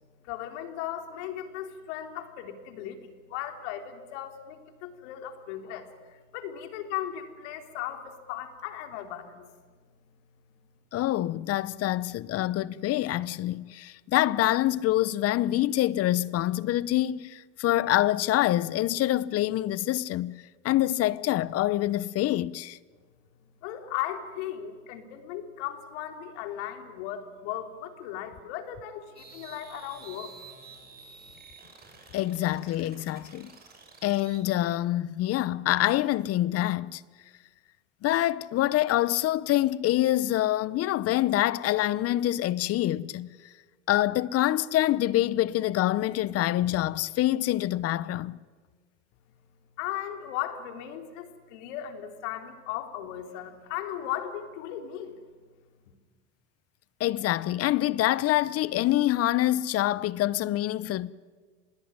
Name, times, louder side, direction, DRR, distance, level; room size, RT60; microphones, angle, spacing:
voice 1, 0.2-9.5 23.6-30.3 49.8-55.1, left 11 dB, 65° left, 3.6 m, -37 dB
voice 2, 10.9-22.8 32.1-33.5 34.0-37.0 38.0-43.3 43.9-48.4 57.0-61.1, left 14 dB, 40° left, 0.9 m, -26 dB
sound 1, 29.2-34.4, right 5 dB, 25° right, 7.1 m, -50 dB
26.0 x 21.5 x 9.7 m
supercardioid pair, 105°, 37 cm